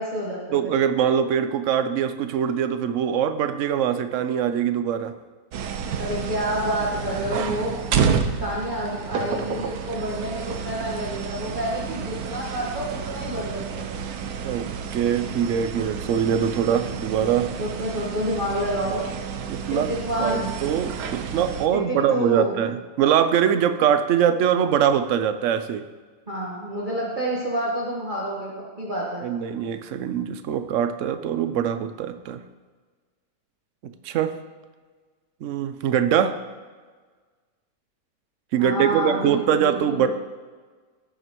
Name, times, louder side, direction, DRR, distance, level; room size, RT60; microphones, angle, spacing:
voice 1, 0.0-0.7 6.0-7.7 8.4-13.9 17.6-19.0 19.7-20.5 21.7-22.5 26.3-28.5 28.8-29.3 38.6-40.1, equal, 35° right, -6 dB, 1.6 m, -28 dB
voice 2, 0.5-5.1 14.4-17.5 19.5-19.9 20.2-25.8 29.2-32.4 33.8-34.3 35.4-36.3 38.5-40.1, right 9 dB, 65° right, 9 dB, 0.9 m, -23 dB
sound 1, 5.5-21.7, right 6 dB, 80° right, 1.2 m, -30 dB
17.0 x 6.6 x 3.0 m, 1.5 s
omnidirectional pair, 1.5 m